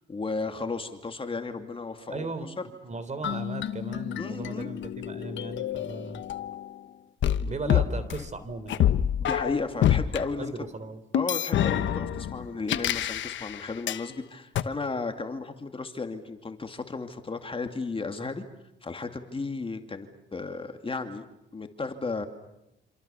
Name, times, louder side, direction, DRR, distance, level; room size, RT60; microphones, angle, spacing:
voice 1, 0.0-2.5 4.2-4.7 7.6-7.8 9.2-10.5 11.1-18.4 18.8-21.2 21.5-22.3, left 3 dB, 25° left, 6 dB, 2.5 m, -34 dB
voice 2, 2.1-2.5 2.8-6.2 7.5-8.9 10.4-11.0, right 3 dB, 35° right, 12 dB, 3.4 m, -37 dB
sound 1, 3.2-6.8 7.2-10.2 11.1-14.0 14.6-14.7, left 10 dB, 70° left, 1.2 m, -27 dB
27.5 x 27.0 x 7.1 m, 0.90 s
cardioid pair, 90°, 20 cm